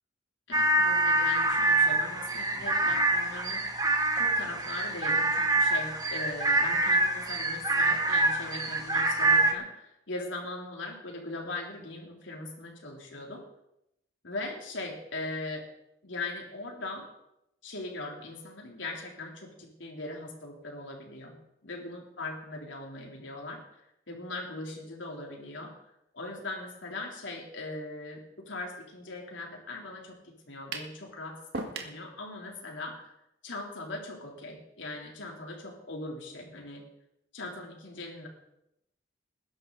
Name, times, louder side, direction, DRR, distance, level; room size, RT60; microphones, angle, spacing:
voice 1, 0.5-3.7 4.1-13.4 14.2-15.6 16.0-17.1 17.6-21.4 21.6-23.6 24.1-25.7 26.1-33.1 33.4-36.8 37.3-38.3, left 2 dB, 80° left, 0 dB, 3.5 m, -40 dB
sound 1, 0.5-9.5, right 2 dB, 20° right, 1.6 m, -26 dB
sound 2, 30.7-31.0 31.5-32.0, right 3 dB, 65° right, 1.9 m, -36 dB
20.5 x 11.0 x 4.1 m, 0.83 s
head